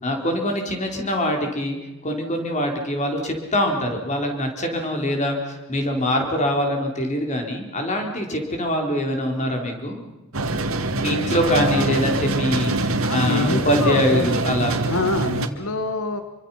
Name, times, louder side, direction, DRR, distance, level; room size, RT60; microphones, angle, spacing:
voice 1, 0.0-1.8 2.0-10.0 10.9-14.8, equal, 35° left, 3 dB, 4.2 m, -24 dB
sound 1, 10.3-15.5, right 2 dB, 75° right, 1.9 m, -24 dB
voice 2, 11.4-11.9 13.0-14.3 14.9-16.2, left 3 dB, 80° left, 8 dB, 1.6 m, -26 dB
27.5 x 24.5 x 5.8 m, 1.1 s
head